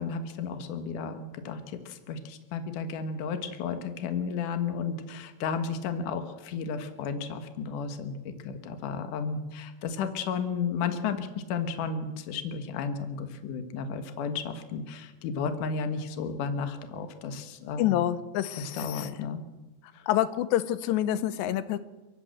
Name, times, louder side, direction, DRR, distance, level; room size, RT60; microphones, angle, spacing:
voice 1, 0.0-18.0 18.6-19.4 19.9-20.1, left 5 dB, 60° left, 8 dB, 2.6 m, -33 dB
voice 2, 17.8-19.2 20.1-21.8, left 12 dB, 90° left, 13 dB, 3.1 m, -27 dB
30.0 x 11.5 x 7.7 m, 1.1 s
omnidirectional pair, 4.8 m